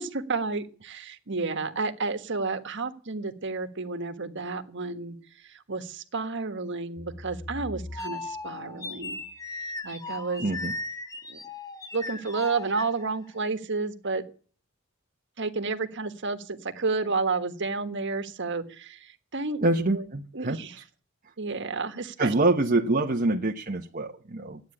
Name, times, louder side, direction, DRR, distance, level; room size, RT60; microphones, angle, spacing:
voice 1, 0.0-5.2 5.7-9.2 9.5-10.5 11.3-11.4 11.9-14.2 15.4-20.0 20.3-20.7 21.4-22.3, right 4 dB, 60° right, 8 dB, 1.5 m, -31 dB
sound 1, 7.0-13.3, left 3 dB, 15° left, 1.0 m, -38 dB
voice 2, 10.4-10.7 19.6-20.6 22.2-24.6, right 2 dB, 40° right, 1 dB, 1.0 m, -25 dB
14.0 x 9.3 x 9.8 m, 0.43 s
head